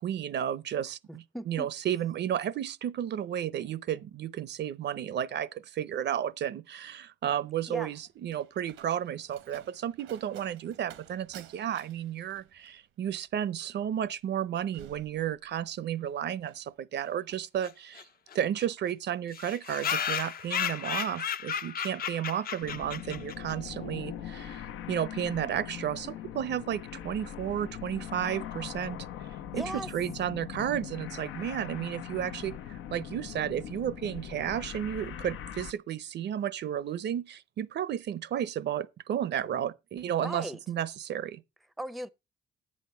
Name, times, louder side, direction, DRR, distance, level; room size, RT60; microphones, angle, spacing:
voice 1, 0.0-18.0 18.3-29.3 29.5-29.6 29.9-41.4, right 10 dB, 60° right, 0.6 m, -33 dB
voice 2, 1.1-1.7 7.7-7.9 29.5-29.9 40.2-40.6 41.8-42.1, right 1 dB, ahead, 0.6 m, -37 dB
Slam, 7.4-15.9 16.2-16.7, right 11 dB, 85° right, 1.0 m, -54 dB
sound 1, 17.6-17.7 18.0-18.1 18.3-18.4 18.6-18.7 19.3-23.5, left 8 dB, 50° left, 0.7 m, -33 dB
sound 2, 22.6-35.7, left 10 dB, 85° left, 0.8 m, -41 dB
10.5 x 8.6 x 4.3 m
cardioid pair, 90°, 20 cm